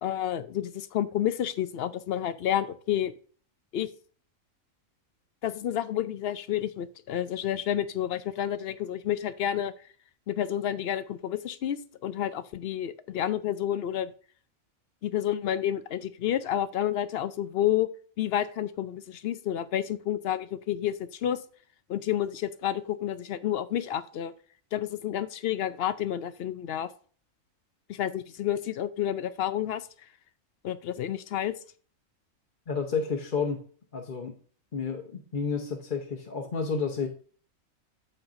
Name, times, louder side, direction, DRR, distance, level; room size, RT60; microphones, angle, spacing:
voice 1, 0.0-3.1 3.7-3.9 5.4-9.7 10.3-14.1 15.0-17.9 18.2-21.4 21.9-24.3 24.7-26.9 27.9-29.9 30.6-31.5, left 11 dB, 65° left, 13 dB, 0.6 m, -30 dB
voice 2, 32.7-33.6 33.9-34.4 34.7-37.1, left 5 dB, 40° left, 1 dB, 1.0 m, -30 dB
13.5 x 4.5 x 2.6 m, 0.44 s
omnidirectional pair, 1.4 m